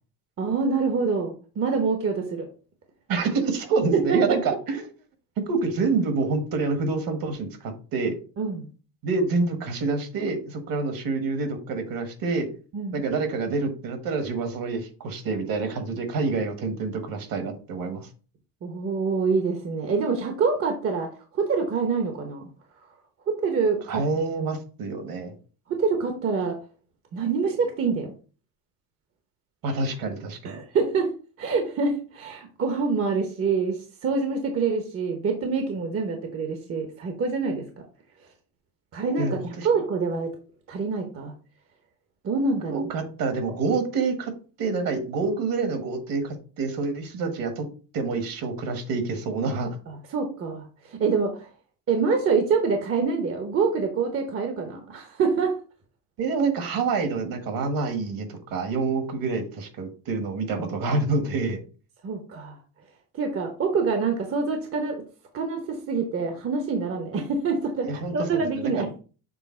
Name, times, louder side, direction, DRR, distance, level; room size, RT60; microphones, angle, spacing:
voice 1, 0.4-2.5 3.9-4.2 8.4-8.7 12.7-13.0 18.6-22.5 23.3-24.0 25.7-26.6 27.1-28.1 30.4-31.1 31.4-37.7 38.9-39.4 39.6-40.3 40.7-41.3 42.2-42.9 49.9-51.5 51.9-55.5 62.0-62.6 63.2-65.0 65.3-69.0, right 4 dB, 30° right, 5 dB, 0.9 m, -26 dB
voice 2, 3.1-4.9 5.4-8.2 9.0-12.5 12.9-18.1 23.9-25.3 29.6-30.6 39.2-39.7 42.7-44.3 44.6-47.7 47.9-49.7 56.2-61.6 67.8-68.9, right 4 dB, 50° right, 8 dB, 1.4 m, -27 dB
7.1 x 3.3 x 4.3 m, 0.37 s
cardioid pair, 150°, 45 cm